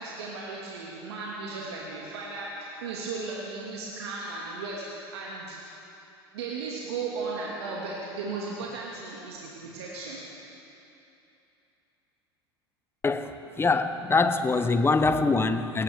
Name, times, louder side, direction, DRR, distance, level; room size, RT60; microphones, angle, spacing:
voice 1, 0.0-5.6 6.3-10.2, right 4 dB, 75° right, -4 dB, 2.1 m, -36 dB
voice 2, 13.0-15.8, left 3 dB, 15° left, 10 dB, 0.9 m, -24 dB
19.0 x 18.0 x 3.6 m, 2.9 s
hypercardioid pair, 80°, 14 cm